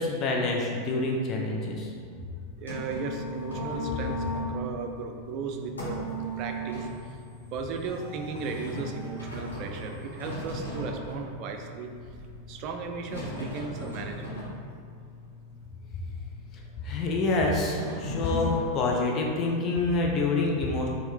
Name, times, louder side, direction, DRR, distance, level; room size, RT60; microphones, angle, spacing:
voice 1, 0.0-1.9 16.8-20.9, left 3 dB, 30° left, -1 dB, 0.5 m, -27 dB
sound 1, 2.2-18.6, equal, 80° left, 1.2 m, -38 dB
voice 2, 2.6-6.9 7.5-11.9 12.5-14.4, right 5 dB, 40° right, 4 dB, 0.4 m, -36 dB
4.4 x 2.8 x 3.3 m, 2.1 s
figure-of-eight pair, 90°, 0 cm